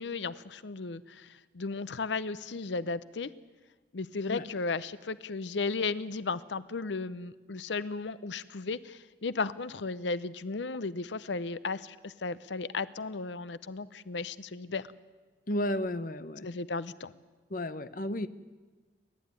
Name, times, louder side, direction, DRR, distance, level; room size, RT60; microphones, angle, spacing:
voice 1, 0.0-3.3 3.9-14.8 16.4-17.1, left 4 dB, 85° left, 16 dB, 0.7 m, -35 dB
voice 2, 15.5-16.5 17.5-18.3, left 1 dB, 50° left, 12 dB, 0.9 m, -32 dB
30.0 x 12.5 x 9.7 m, 1.3 s
head